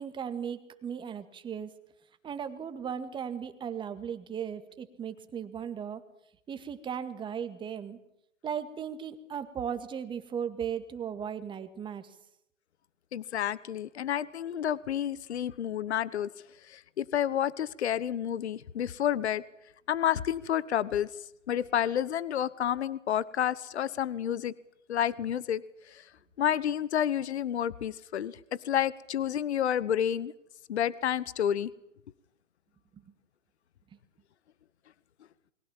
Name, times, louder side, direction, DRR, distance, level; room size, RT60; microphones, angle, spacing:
voice 1, 0.0-1.7 2.2-6.0 6.5-8.0 8.4-12.1 32.9-33.0, right 8 dB, 10° right, 9 dB, 1.9 m, -37 dB
voice 2, 13.1-16.3 16.6-19.4 19.9-21.1 21.5-24.5 24.9-25.6 25.9-26.1 26.4-30.3 30.7-31.7, left 10 dB, 60° left, 20 dB, 1.2 m, -30 dB
29.0 x 22.5 x 7.3 m, 0.81 s
figure-of-eight pair, 130°, 38 cm